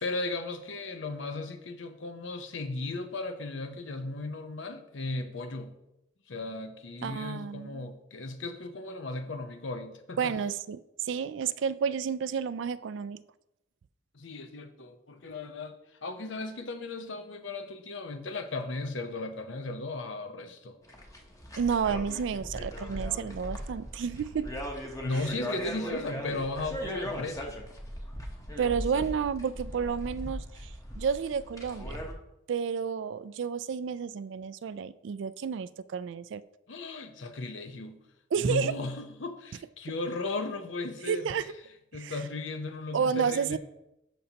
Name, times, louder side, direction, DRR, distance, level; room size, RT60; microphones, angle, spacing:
voice 1, 0.0-5.8 6.3-10.4 14.1-20.8 25.0-27.6 36.7-38.0 38.4-41.3 41.9-43.6, left 2 dB, 70° left, 8 dB, 0.8 m, -36 dB
voice 2, 7.0-7.9 10.2-10.8 11.1-13.2 21.6-24.5 28.6-32.0 32.5-36.4 38.3-38.7 41.1-41.5 41.9-42.2 42.9-43.6, right 6 dB, 65° right, 16 dB, 0.3 m, -31 dB
sound 1, 20.8-32.1, equal, 20° left, 1.0 m, -38 dB
13.0 x 5.3 x 2.9 m, 0.87 s
head